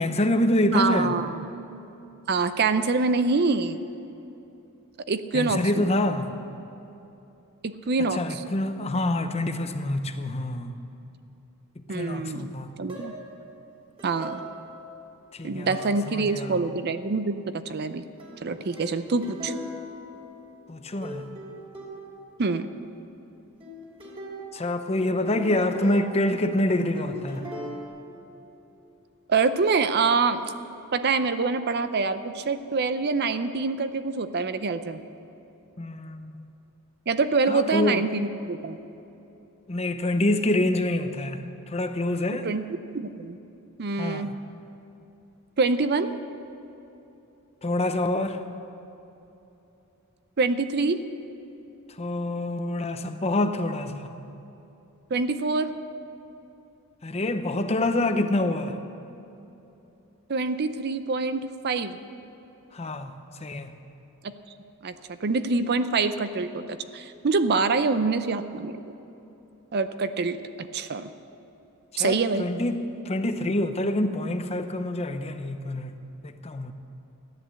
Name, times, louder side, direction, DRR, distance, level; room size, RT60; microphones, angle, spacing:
voice 1, 0.0-1.1 5.3-6.3 8.2-10.7 11.9-12.7 15.4-15.8 16.1-16.5 20.7-21.2 24.5-27.4 35.8-36.4 37.5-38.0 39.7-41.4 41.7-42.5 44.0-44.3 47.6-48.4 52.0-54.1 57.0-58.7 62.7-63.1 63.4-63.7 72.0-75.9 76.2-76.7, left 1 dB, 30° left, 8 dB, 0.7 m, -26 dB
voice 2, 0.7-1.5 2.3-3.8 5.1-5.9 7.6-8.4 11.9-12.5 12.8-13.1 14.0-14.4 15.4-18.0 18.4-19.5 22.4-22.7 29.3-30.5 30.9-35.0 37.1-38.8 42.3-43.4 43.8-44.3 45.6-46.1 50.4-51.0 55.1-55.7 60.3-62.0 64.2-64.3 64.8-68.9 69.7-71.1 72.0-72.5, right 4 dB, 45° right, 11 dB, 0.5 m, -25 dB
sound 1, 12.9-13.4 14.0-15.0 15.7-16.1 16.4-17.0 18.2-20.8 21.0-22.4 23.6-26.7 26.9-27.9, equal, 25° right, 2.9 m, -40 dB
14.5 x 10.5 x 7.6 m, 2.9 s
head